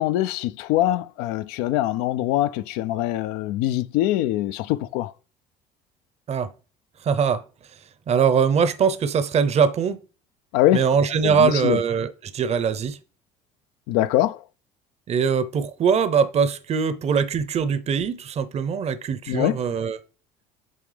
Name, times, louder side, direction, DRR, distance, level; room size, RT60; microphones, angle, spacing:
voice 1, 0.0-5.1 10.5-10.9 11.2-11.8 13.9-14.4 19.3-19.6, left 14 dB, 75° left, 0.4 m, -23 dB
voice 2, 7.0-7.4 8.1-10.0 10.7-13.0 15.1-20.0, right 6 dB, 40° right, 0.7 m, -22 dB
8.5 x 3.4 x 3.3 m
supercardioid pair, 75°, 16 cm